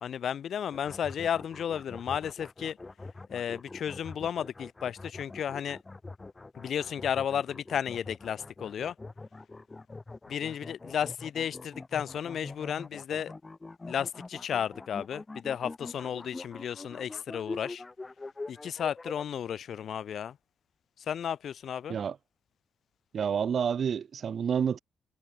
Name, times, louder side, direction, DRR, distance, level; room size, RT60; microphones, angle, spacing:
voice 1, 0.0-2.8 3.3-5.8 6.5-8.9 10.3-13.3 13.9-17.8 18.5-20.4 21.0-22.0, left 8 dB, 60° left, 1.2 m, -33 dB
sound 1, 0.7-19.2, left 3 dB, 30° left, 1.8 m, -44 dB
voice 2, 23.1-24.8, right 7 dB, 55° right, 1.1 m, -29 dB
hypercardioid pair, 40°, 0 cm